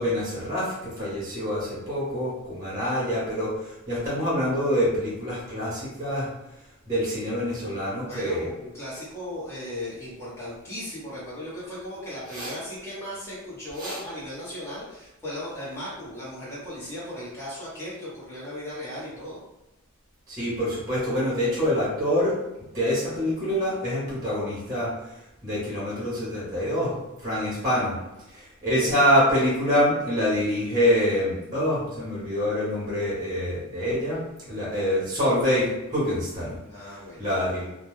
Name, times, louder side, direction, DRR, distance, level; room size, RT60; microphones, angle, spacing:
voice 1, 0.0-6.3 6.9-8.5 12.3-12.5 13.8-14.0 20.3-22.3 22.7-24.9 25.4-26.9 27.2-27.9 28.3-34.2 34.5-36.5 37.2-37.7, equal, 15° right, -8 dB, 0.9 m, -25 dB
voice 2, 8.0-19.4 36.6-37.3, left 1 dB, 10° left, -9 dB, 0.9 m, -37 dB
2.2 x 2.2 x 3.0 m, 0.95 s
head